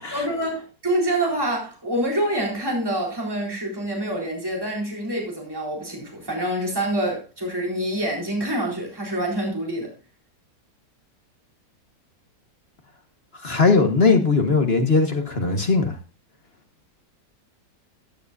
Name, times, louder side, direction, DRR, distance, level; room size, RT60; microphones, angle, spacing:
voice 1, 0.1-9.9, right 1 dB, 10° right, 4.1 m, -26 dB
voice 2, 13.4-16.0, left 4 dB, 35° left, 1.4 m, -19 dB
14.5 x 10.0 x 2.6 m
omnidirectional pair, 1.9 m